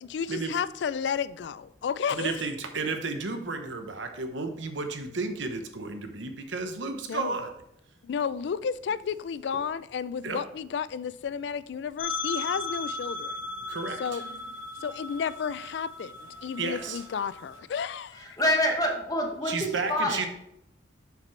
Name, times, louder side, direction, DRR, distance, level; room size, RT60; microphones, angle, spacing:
voice 1, 0.0-2.4 7.1-7.4 8.0-13.4 14.0-14.2 14.8-18.3, left 7 dB, 60° left, 0.3 m, -32 dB
voice 2, 2.1-7.5 10.2-10.4 13.7-14.2 16.6-17.0 19.4-20.3, right 3 dB, 75° right, 1.0 m, -32 dB
sound 1, 12.0-17.6, left 3 dB, 90° left, 1.1 m, -37 dB
voice 3, 18.2-20.3, left 1 dB, 20° left, 1.0 m, -27 dB
7.0 x 6.8 x 3.2 m
head